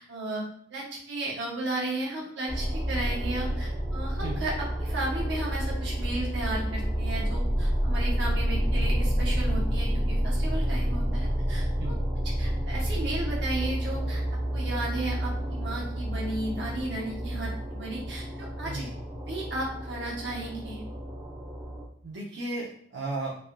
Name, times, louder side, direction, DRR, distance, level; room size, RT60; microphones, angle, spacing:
voice 1, 0.0-4.5 4.8-11.9 12.4-14.2 14.5-18.8 19.3-20.8, right 2 dB, 70° right, -4 dB, 1.0 m, -34 dB
sound 1, 2.5-21.9, equal, 25° right, 0.6 m, -29 dB
voice 2, 22.0-23.3, right 2 dB, 90° right, -5 dB, 0.5 m, -34 dB
3.2 x 2.4 x 2.2 m, 0.62 s
head